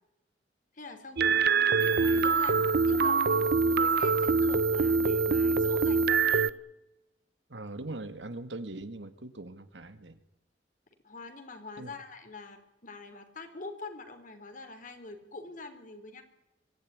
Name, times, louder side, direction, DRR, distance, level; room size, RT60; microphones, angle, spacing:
voice 1, 0.7-1.5 1.8-6.5 11.0-16.2, left 3 dB, 45° left, 7 dB, 3.7 m, -45 dB
sound 1, 1.2-6.5, right 4 dB, 60° right, 0.7 m, -24 dB
voice 2, 7.5-10.2 11.8-11.9, right 2 dB, 80° right, 10 dB, 2.0 m, -41 dB
24.0 x 16.5 x 9.6 m, 0.94 s
head